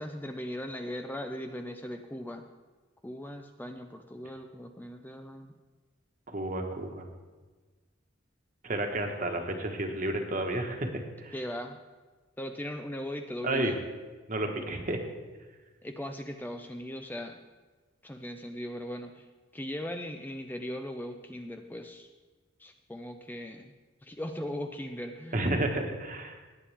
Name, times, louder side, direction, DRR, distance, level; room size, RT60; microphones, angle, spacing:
voice 1, 0.0-2.4 3.0-5.5 11.3-11.8 12.4-13.7 15.8-17.4 18.0-19.3 19.5-22.1 22.6-23.7 24.0-25.5, left 1 dB, 10° left, 5 dB, 0.5 m, -39 dB
voice 2, 6.3-7.1 8.6-11.3 13.4-13.7 14.3-15.0 25.3-26.4, right 1 dB, 40° right, 4 dB, 1.4 m, -31 dB
18.0 x 8.7 x 3.5 m, 1.3 s
head